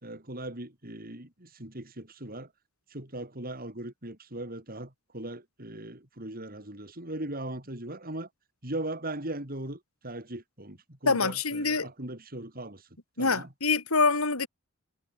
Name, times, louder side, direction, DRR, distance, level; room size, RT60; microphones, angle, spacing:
voice 1, 0.0-2.5 2.9-8.3 8.6-12.8 13.2-13.5, right 1 dB, 45° right, 5.9 m, -39 dB
voice 2, 11.1-11.9 13.2-14.5, left 4 dB, 90° left, 3.8 m, -25 dB
head